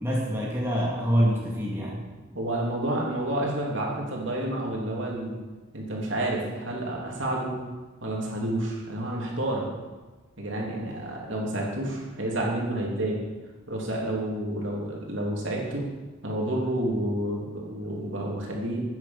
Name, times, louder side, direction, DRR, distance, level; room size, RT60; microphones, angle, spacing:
voice 1, 0.0-2.0, equal, 10° right, -4 dB, 2.2 m, -25 dB
voice 2, 2.3-5.3 5.7-7.6 8.0-9.7 10.4-13.2 13.7-15.8 16.2-18.8, right 1 dB, 65° right, -2 dB, 3.2 m, -29 dB
10.5 x 9.5 x 7.3 m, 1.2 s
head